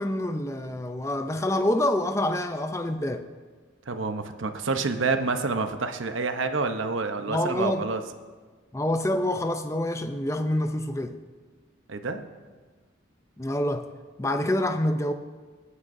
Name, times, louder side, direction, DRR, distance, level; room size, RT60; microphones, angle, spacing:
voice 1, 0.0-3.2 7.3-7.9 8.7-11.2 13.4-13.8 14.2-15.1, left 1 dB, 15° left, 7 dB, 0.5 m, -26 dB
voice 2, 3.9-8.0 11.9-12.3, right 3 dB, 75° right, 7 dB, 0.9 m, -28 dB
25.0 x 9.6 x 2.7 m, 1.4 s
head